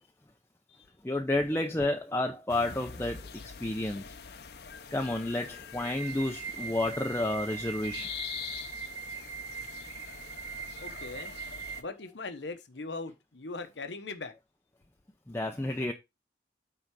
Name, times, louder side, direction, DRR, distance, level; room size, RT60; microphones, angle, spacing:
voice 1, 1.0-3.2 3.6-4.1 4.9-8.1 15.3-15.9, left 1 dB, 15° left, 0.6 m, -30 dB
sound 1, 2.5-11.8, left 7 dB, 60° left, 0.8 m, -45 dB
sound 2, 5.8-11.8, right 6 dB, 90° right, 1.2 m, -41 dB
voice 2, 10.8-11.3 11.8-14.3, left 3 dB, 80° left, 1.0 m, -40 dB
9.1 x 3.9 x 4.7 m
head